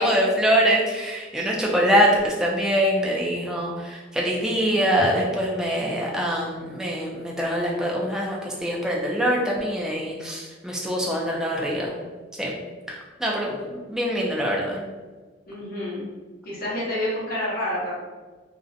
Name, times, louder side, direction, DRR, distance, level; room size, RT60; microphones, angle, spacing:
voice 1, 0.0-11.9 12.4-12.6 12.9-14.8, equal, 5° right, -3 dB, 0.3 m, -24 dB
voice 2, 15.5-16.1 16.4-17.9, left 1 dB, 50° left, -7 dB, 0.8 m, -28 dB
2.4 x 2.1 x 2.5 m, 1.4 s
head